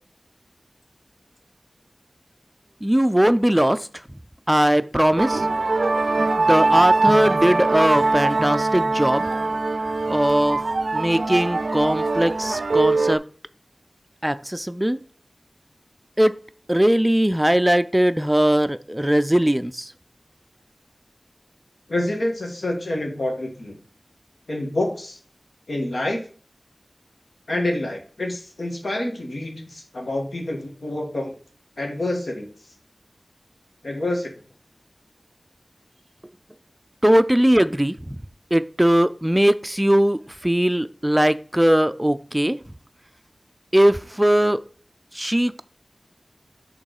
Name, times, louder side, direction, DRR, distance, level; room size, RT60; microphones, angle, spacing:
voice 1, 2.8-3.9 4.5-5.5 6.4-9.3 10.1-10.6 10.9-13.2 14.2-15.0 16.2-16.4 16.7-19.9 37.0-38.2 38.5-42.6 43.7-44.6 45.1-45.6, right 1 dB, 10° right, 13 dB, 0.4 m, -19 dB
sound 1, 5.2-13.2, right 3 dB, 80° right, 0.4 m, -22 dB
voice 2, 21.9-23.8 24.5-25.2 25.7-26.2 27.5-31.3 31.8-32.5 33.8-34.3, left 1 dB, 80° left, 2 dB, 1.6 m, -27 dB
6.4 x 3.7 x 4.8 m, 0.43 s
wide cardioid pair, 60°, 0 cm